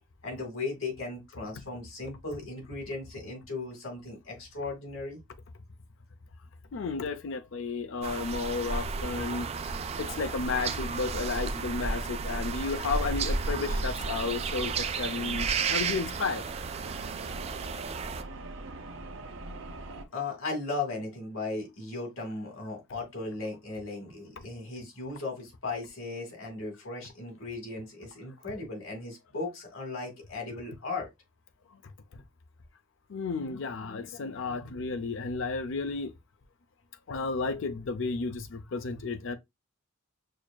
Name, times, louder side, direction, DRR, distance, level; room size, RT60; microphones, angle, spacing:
voice 1, 0.2-5.2 20.1-31.1, left 3 dB, 90° left, 2.2 m, -37 dB
voice 2, 6.7-16.4 31.7-31.8 32.1-32.2 33.1-36.1 37.1-39.4, left 4 dB, 65° left, 0.5 m, -33 dB
sound 1, 8.0-18.2, right 4 dB, 30° right, 0.3 m, -32 dB
sound 2, 9.2-20.0, right 3 dB, 65° right, 0.6 m, -45 dB
6.3 x 2.5 x 2.2 m
head